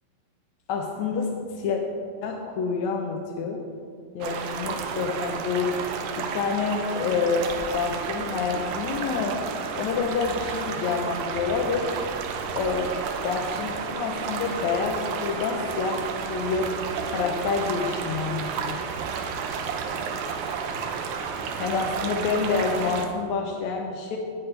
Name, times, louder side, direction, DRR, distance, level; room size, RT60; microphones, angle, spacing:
voice 1, 0.7-1.8 2.2-3.6 4.1-5.8 6.2-9.4 9.8-11.9 12.5-12.9 13.2-16.8 17.0-18.8 21.6-24.2, left 5 dB, 75° left, 1 dB, 1.7 m, -28 dB
sound 1, 4.2-23.1, right 6 dB, 85° right, 2.6 m, -32 dB
17.5 x 7.7 x 3.3 m, 2.3 s
omnidirectional pair, 4.2 m